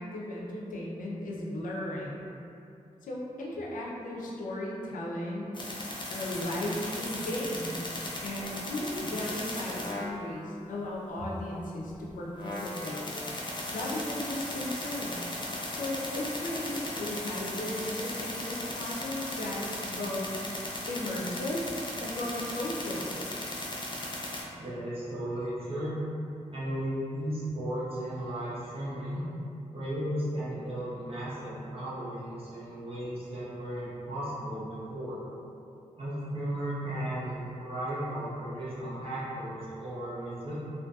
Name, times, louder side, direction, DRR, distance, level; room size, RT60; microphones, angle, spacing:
voice 1, 0.0-2.3 3.0-5.6 6.1-7.9 8.2-13.1 13.7-15.2 15.7-20.4 20.9-21.6 22.0-23.2, left 1 dB, 90° left, -4 dB, 0.4 m, -36 dB
sound 1, 5.5-10.1 12.1-12.2 12.4-24.4, left 1 dB, 35° left, 0.5 m, -37 dB
voice 2, 24.6-26.0 26.5-29.3 29.7-35.2 36.0-40.5, right 1 dB, 45° right, -10 dB, 0.8 m, -35 dB
2.6 x 2.5 x 2.3 m, 2.7 s
cardioid pair, 50°, 13 cm